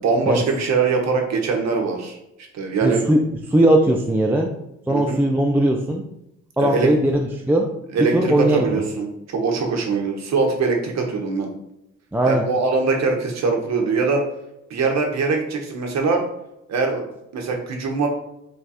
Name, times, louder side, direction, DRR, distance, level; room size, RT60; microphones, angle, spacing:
voice 1, 0.0-2.2 2.5-3.0 4.9-5.2 6.6-6.9 7.9-11.5 12.3-14.2 14.7-16.2 16.7-17.0 17.3-18.1, right 4 dB, 60° right, 2 dB, 0.9 m, -22 dB
voice 2, 2.8-3.2 3.5-4.5 4.9-6.0 6.6-7.7 8.0-8.8 12.1-12.4, right 1 dB, 5° right, 1 dB, 0.4 m, -19 dB
3.3 x 2.3 x 4.1 m, 0.86 s
cardioid pair, 90°, 30 cm